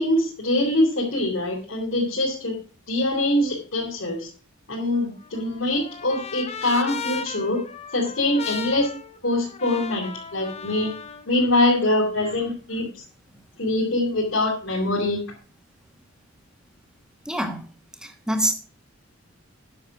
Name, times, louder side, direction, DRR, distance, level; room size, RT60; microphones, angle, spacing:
voice 1, 0.0-2.6 2.9-4.3 4.7-7.7 7.9-8.9 9.2-11.0 11.3-13.0 13.6-15.2, left 1 dB, 70° left, -5 dB, 3.6 m, -23 dB
Trumpet, 4.9-11.2, left 6 dB, 30° left, 1.0 m, -36 dB
voice 2, 17.2-17.7 18.0-18.5, right 1 dB, 5° right, 6 dB, 1.5 m, -25 dB
10.0 x 7.1 x 6.1 m, 0.38 s
head